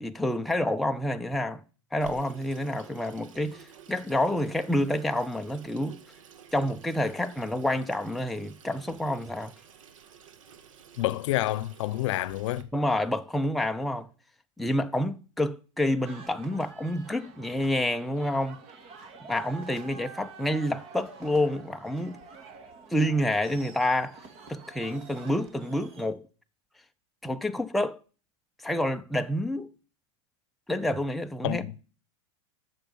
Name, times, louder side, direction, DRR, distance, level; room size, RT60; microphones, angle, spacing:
voice 1, 0.0-1.6 1.9-3.6 3.9-6.0 6.5-9.5 12.7-14.1 14.6-18.6 19.2-22.2 22.9-24.2 24.5-26.2 27.2-28.0 28.6-29.7 30.7-31.8, left 1 dB, ahead, 0.4 m, -28 dB
Water tap faucet / Sink (filling or washing), 2.0-12.6, right 7 dB, 90° right, 1.5 m, -51 dB
voice 2, 11.0-12.7 31.4-31.7, left 16 dB, 70° left, 0.7 m, -28 dB
sound 1, 16.0-26.1, right 5 dB, 40° right, 2.0 m, -48 dB
9.1 x 6.7 x 8.7 m
supercardioid pair, 145°, 16 cm